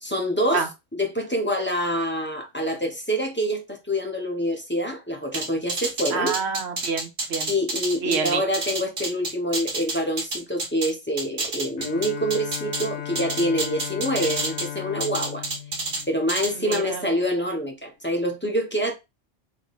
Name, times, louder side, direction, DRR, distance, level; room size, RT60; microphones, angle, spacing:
voice 1, 0.0-6.4 7.5-15.4 16.1-18.9, equal, 10° left, 0.8 m, -26 dB
sound 1, 5.3-10.9 11.2-12.9 13.2-14.7 15.0-16.0 16.3-16.8, right 2 dB, 55° right, 1.5 m, -29 dB
voice 2, 6.1-7.5 8.0-8.4 16.5-17.1, right 5 dB, 70° right, 1.0 m, -27 dB
Bowed string instrument, 11.8-17.0, left 11 dB, 80° left, 0.9 m, -36 dB
3.4 x 3.1 x 4.1 m
omnidirectional pair, 1.2 m